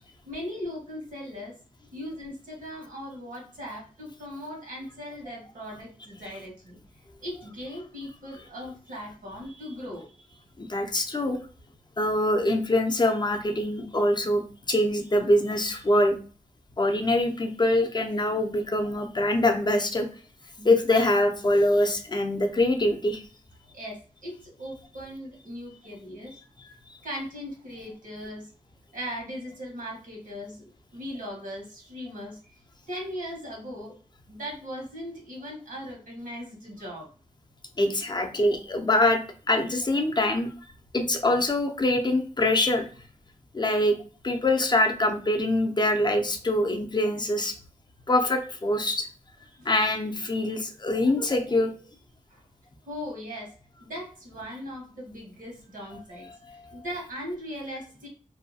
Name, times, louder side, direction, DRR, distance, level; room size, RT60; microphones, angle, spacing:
voice 1, 0.2-1.6 1.9-6.8 7.2-10.4 20.6-20.7 23.7-26.4 27.0-28.5 28.9-32.6 32.9-33.9 34.3-37.1 49.6-49.7 52.3-52.4 52.8-53.5 53.8-58.1, equal, 85° right, -2 dB, 1.2 m, -39 dB
voice 2, 10.6-11.4 12.0-16.2 16.8-20.1 20.6-23.2 37.8-40.5 40.9-42.9 43.5-44.0 44.2-47.5 48.1-49.1 49.7-51.7 56.5-56.6, left 1 dB, 30° left, 5 dB, 0.5 m, -24 dB
2.7 x 2.3 x 2.7 m, 0.39 s
wide cardioid pair, 70°, 14 cm